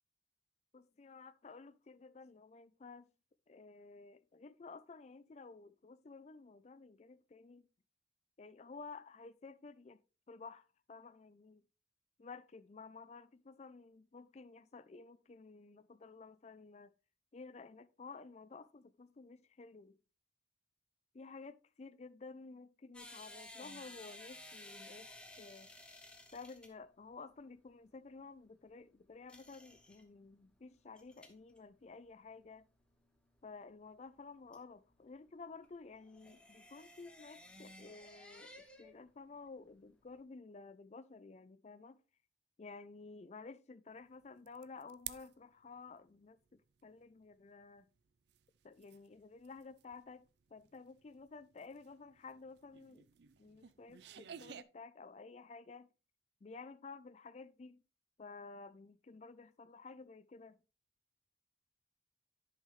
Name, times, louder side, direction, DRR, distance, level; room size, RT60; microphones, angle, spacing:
voice 1, 0.7-3.1 3.5-7.7 8.4-10.0 10.3-11.6 12.2-16.9 17.3-20.0 21.1-25.1 25.4-25.7 26.3-32.7 33.4-42.0 42.6-47.9 48.6-53.1 53.4-55.9 56.4-57.8 58.2-60.6, left 4 dB, 35° left, 0.4 m, -53 dB
sound 1, 22.9-39.0 39.3-40.2, left 1 dB, 5° left, 1.0 m, -56 dB
sound 2, 44.1-45.4 45.6-54.6, right 10 dB, 60° right, 0.4 m, -54 dB
10.5 x 5.5 x 3.1 m
head